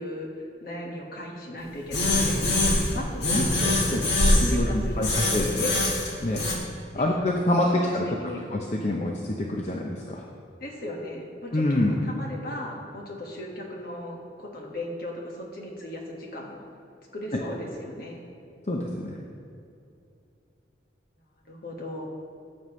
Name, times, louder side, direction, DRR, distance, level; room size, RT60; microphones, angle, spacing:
voice 1, 0.0-2.5 2.9-5.9 7.0-7.2 7.7-7.9 8.2-8.4 10.6-16.6 17.1-18.2 21.4-22.1, left 1 dB, 50° left, -2 dB, 1.6 m, -37 dB
sound 1, 1.9-2.9 3.2-4.6 5.0-6.6, left 1 dB, 70° left, 1.6 m, -23 dB
voice 2, 3.3-4.0 4.4-5.6 6.2-6.4 6.9-8.1 8.5-10.2 11.5-11.9 17.3-17.4 18.7-19.2, left 1 dB, 35° left, 0 dB, 0.7 m, -26 dB
14.5 x 7.2 x 3.2 m, 2.6 s
head